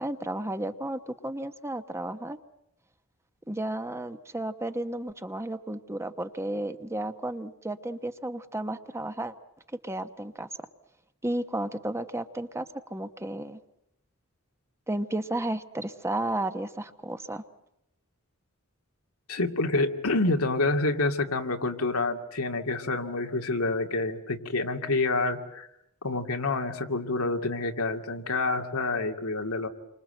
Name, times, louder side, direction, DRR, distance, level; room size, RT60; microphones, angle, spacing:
voice 1, 0.0-2.4 3.5-9.3 9.8-10.5 11.2-13.6 14.9-17.4, right 1 dB, 15° right, 9 dB, 1.1 m, -33 dB
voice 2, 19.3-25.7 26.0-29.7, left 2 dB, 90° left, 4 dB, 2.3 m, -28 dB
29.0 x 25.0 x 7.9 m, 0.83 s
head